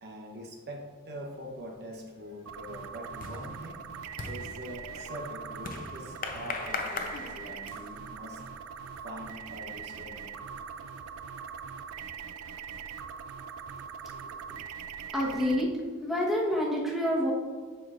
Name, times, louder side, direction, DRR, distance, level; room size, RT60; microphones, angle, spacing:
voice 1, 0.0-3.8 4.3-8.5 9.0-10.4 14.1-14.6, equal, 50° right, 0 dB, 0.8 m, -43 dB
sound 1, 1.6-1.9 2.3-8.1, left 4 dB, 40° left, 0.5 m, -40 dB
sound 2, 2.5-15.6, right 7 dB, 70° right, 0.4 m, -42 dB
voice 2, 15.1-15.7 16.0-17.3, equal, ahead, -4 dB, 1.1 m, -27 dB
7.6 x 5.8 x 2.4 m, 1.5 s
head